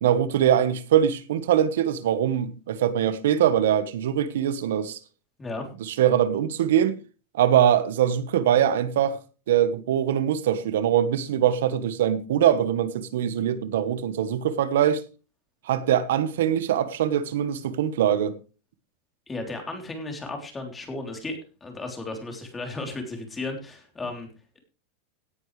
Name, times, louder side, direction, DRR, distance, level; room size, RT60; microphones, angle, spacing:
voice 1, 0.0-5.0 6.0-7.0 7.3-9.2 9.5-15.0 15.7-18.4, right 10 dB, 80° right, 1.2 m, -22 dB
voice 2, 19.3-24.3, left 2 dB, 10° left, 3.5 m, -34 dB
17.5 x 10.0 x 3.3 m
supercardioid pair, 155°, 0 cm